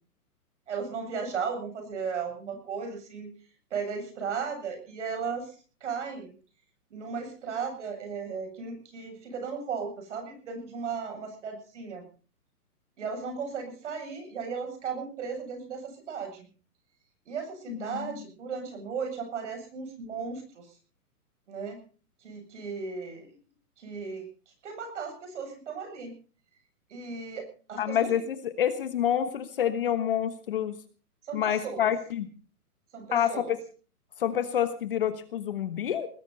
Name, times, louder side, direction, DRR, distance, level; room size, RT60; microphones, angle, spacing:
voice 1, 0.7-3.3 3.7-5.5 5.8-6.3 6.9-12.0 13.0-16.5 17.3-20.7 21.5-21.8 22.2-23.4 23.8-24.3 24.6-26.1 26.9-28.1 31.2-31.9 32.9-33.5, right 5 dB, 50° right, 6 dB, 7.8 m, -36 dB
voice 2, 17.7-18.2 27.8-30.8 31.3-32.3 33.1-33.4 34.2-36.1, left 9 dB, 35° left, 11 dB, 1.3 m, -28 dB
20.0 x 16.5 x 4.1 m, 0.38 s
hypercardioid pair, 170°, 46 cm